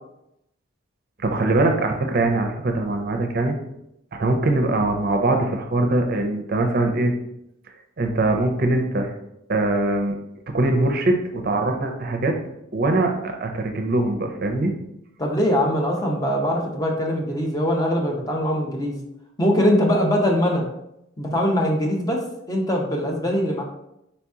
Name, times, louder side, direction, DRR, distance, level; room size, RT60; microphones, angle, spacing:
voice 1, 1.2-3.5 4.1-7.1 8.0-9.1 9.5-10.2 10.5-12.3 12.7-14.7, right 2 dB, 45° right, 4 dB, 0.5 m, -22 dB
voice 2, 15.2-19.0 19.4-20.7 21.2-23.6, equal, 20° left, 0 dB, 0.6 m, -22 dB
4.2 x 2.9 x 3.5 m, 0.82 s
head